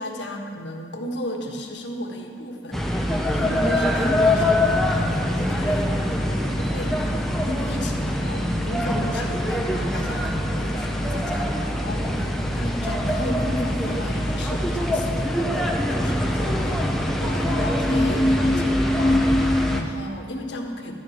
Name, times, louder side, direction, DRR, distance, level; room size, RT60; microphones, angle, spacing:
voice 1, 0.0-20.9, left 1 dB, 65° left, 2 dB, 1.5 m, -34 dB
sound 1, 2.7-19.8, left 1 dB, ahead, 0.8 m, -23 dB
12.5 x 7.1 x 8.8 m, 2.2 s
head